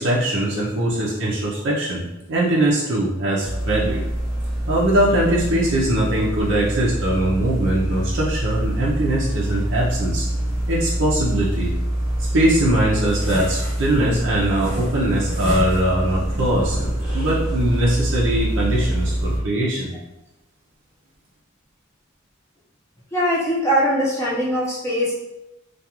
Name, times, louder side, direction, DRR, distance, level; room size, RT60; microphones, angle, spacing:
voice 1, 0.0-4.0 4.7-10.3 10.7-11.7 12.2-16.8 17.1-19.9, right 1 dB, 60° right, -5 dB, 0.4 m, -21 dB
sound 1, 3.4-19.4, right 1 dB, 5° right, 1.0 m, -25 dB
voice 2, 23.1-25.1, equal, 15° left, -7 dB, 0.6 m, -21 dB
2.3 x 2.3 x 2.8 m, 0.95 s
head